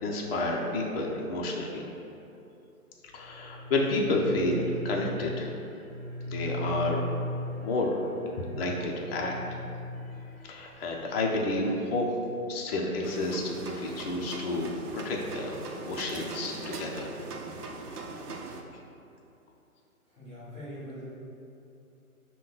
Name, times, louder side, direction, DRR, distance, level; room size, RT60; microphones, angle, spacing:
voice 1, 0.0-1.8 3.1-5.5 6.3-7.0 7.6-8.1 8.4-9.6 10.4-12.1 12.5-15.6 15.8-17.1, left 2 dB, 40° left, -1 dB, 0.6 m, -30 dB
sound 1, 3.1-11.1, left 1 dB, 20° left, 1.2 m, -38 dB
sound 2, 13.0-18.6, right 3 dB, 85° right, 0.7 m, -40 dB
voice 2, 20.1-21.0, equal, 5° right, -14 dB, 1.3 m, -42 dB
5.4 x 2.2 x 3.8 m, 2.8 s
hypercardioid pair, 145°, 45 cm